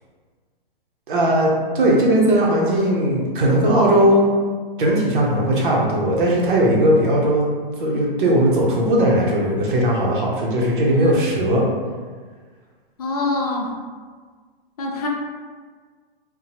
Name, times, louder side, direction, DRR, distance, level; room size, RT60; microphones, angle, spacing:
voice 1, 1.1-4.3 4.8-7.5 7.8-11.6, right 1 dB, 55° right, -2 dB, 0.7 m, -18 dB
voice 2, 13.0-13.8 14.8-15.1, left 2 dB, 40° left, -1 dB, 0.4 m, -25 dB
2.8 x 2.1 x 2.8 m, 1.5 s
hypercardioid pair, 165°, 30 cm